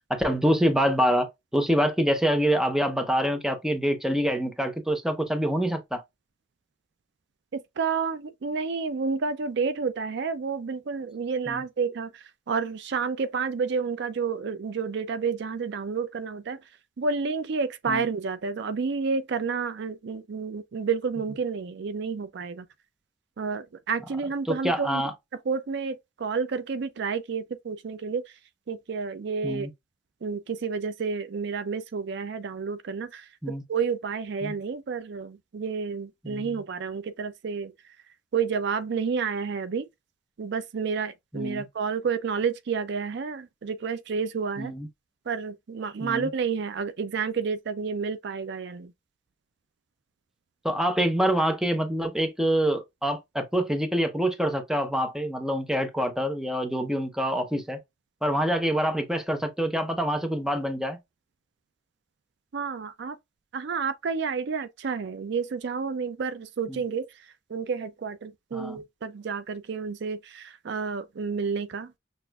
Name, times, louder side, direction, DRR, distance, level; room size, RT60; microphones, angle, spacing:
voice 1, 0.1-6.0 11.5-11.6 17.9-18.0 24.4-25.1 29.4-29.7 33.4-33.6 34.4-34.5 36.2-36.6 41.3-41.7 44.6-44.9 46.0-46.3 50.6-57.8 58.2-61.0 66.7-66.8 68.5-68.8, equal, 5° right, 0.7 m, -26 dB
voice 2, 7.8-12.1 12.5-16.6 17.0-22.6 23.4-25.0 25.5-28.2 28.7-29.7 30.2-33.2 33.7-37.7 38.3-39.9 40.4-44.7 45.3-48.9 62.5-63.2 63.5-67.1 67.5-72.0, right 5 dB, 65° right, 0.4 m, -30 dB
6.1 x 2.5 x 2.3 m
head